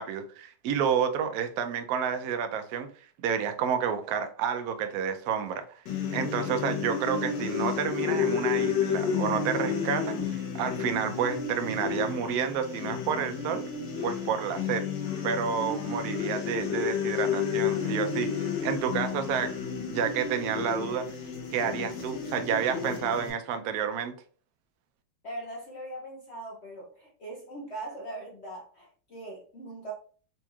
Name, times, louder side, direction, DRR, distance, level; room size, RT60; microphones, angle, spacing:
voice 1, 0.0-2.9 3.2-5.6 6.1-13.6 14.0-14.8 15.2-19.5 19.9-21.1 21.5-24.1, right 7 dB, 70° right, 7 dB, 0.9 m, -30 dB
sound 1, 5.9-23.3, left 6 dB, 85° left, 1.5 m, -31 dB
voice 2, 25.2-29.9, right 1 dB, 60° left, -2 dB, 0.7 m, -40 dB
4.2 x 2.9 x 2.3 m, 0.42 s
omnidirectional pair, 1.9 m